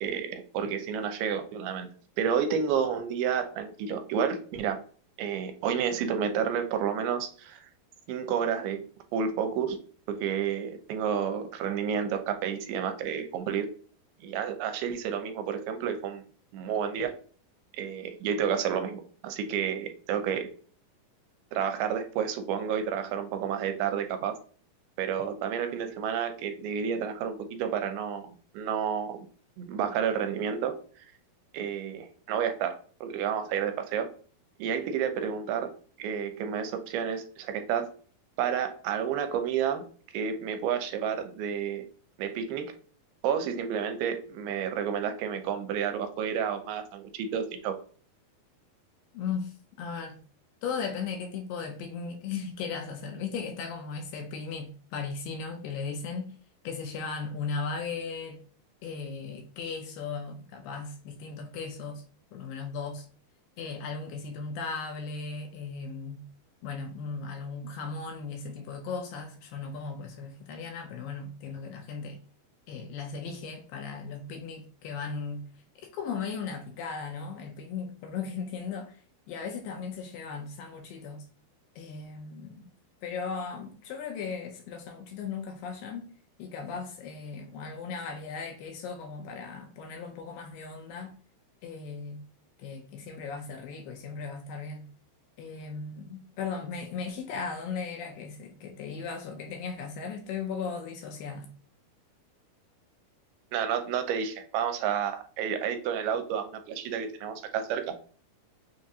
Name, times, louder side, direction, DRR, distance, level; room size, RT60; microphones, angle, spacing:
voice 1, 0.0-1.9 2.2-4.8 5.2-7.6 8.1-8.8 9.1-9.8 10.1-13.7 14.2-16.2 16.5-17.1 17.7-20.5 21.5-24.3 25.0-28.3 28.5-29.3 29.6-30.8 31.5-34.1 34.6-35.7 36.0-37.9 38.4-39.8 40.1-41.8 42.2-42.7 43.2-47.7 103.5-107.9, right 8 dB, 85° right, 2.4 m, -30 dB
voice 2, 49.1-50.2 50.6-56.4 56.6-58.4 58.8-62.0 62.3-63.1 63.6-66.2 66.6-72.2 72.7-75.4 75.8-79.0 79.3-81.3 81.8-82.7 83.0-86.1 86.4-91.2 91.6-92.3 92.6-94.9 95.4-101.5, left 5 dB, 80° left, 2.2 m, -37 dB
6.0 x 2.5 x 2.6 m
omnidirectional pair, 4.4 m